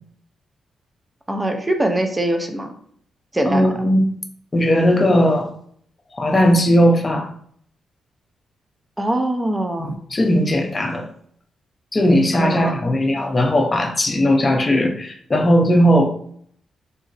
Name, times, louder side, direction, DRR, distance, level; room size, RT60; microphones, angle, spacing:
voice 1, 1.3-2.7 3.3-3.7 9.0-9.9 12.3-12.7, right 1 dB, 15° right, 5 dB, 0.5 m, -22 dB
voice 2, 3.5-4.1 4.5-5.5 6.1-7.3 9.8-11.1 11.9-16.1, equal, 30° left, 3 dB, 0.6 m, -17 dB
3.8 x 2.0 x 2.6 m, 0.62 s
cardioid pair, 75°, 0 cm